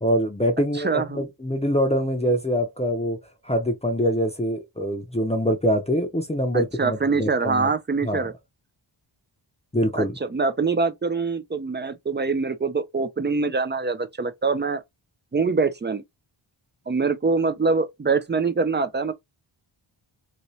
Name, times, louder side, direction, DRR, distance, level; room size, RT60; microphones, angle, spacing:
voice 1, 0.0-3.2 3.4-7.7 8.0-8.3 9.7-10.2, equal, 15° left, 0.6 m, -24 dB
voice 2, 0.7-1.2 6.5-8.3 9.9-14.8 15.3-16.0 16.9-19.1, right 4 dB, 25° right, 0.4 m, -24 dB
2.9 x 2.7 x 3.1 m
wide cardioid pair, 115°, 48 cm